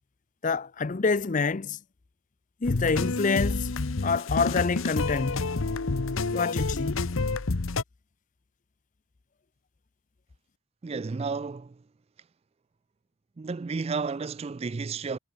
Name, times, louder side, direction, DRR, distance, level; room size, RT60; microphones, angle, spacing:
voice 1, 0.4-1.8 2.6-3.8 4.0-5.6 6.3-7.1, left 4 dB, 35° left, 0.5 m, -27 dB
sound 1, 2.6-7.8, left 3 dB, 65° left, 0.9 m, -28 dB
voice 2, 10.8-11.7 13.4-15.2, right 4 dB, 30° right, 0.3 m, -32 dB
head